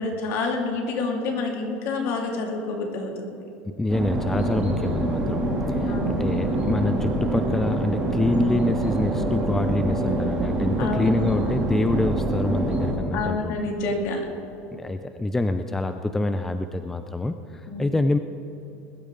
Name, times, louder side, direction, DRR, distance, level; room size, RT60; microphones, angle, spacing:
voice 1, 0.0-3.3 5.9-6.3 10.8-11.1 13.1-14.2 17.7-17.9, left 3 dB, 50° left, 1 dB, 2.4 m, -28 dB
voice 2, 3.7-13.6 14.7-18.2, left 2 dB, 5° left, 8 dB, 0.4 m, -26 dB
sound 1, 3.9-12.9, right 1 dB, 20° right, 2.7 m, -25 dB
21.0 x 12.5 x 3.8 m, 2.9 s
supercardioid pair, 150°, 5 cm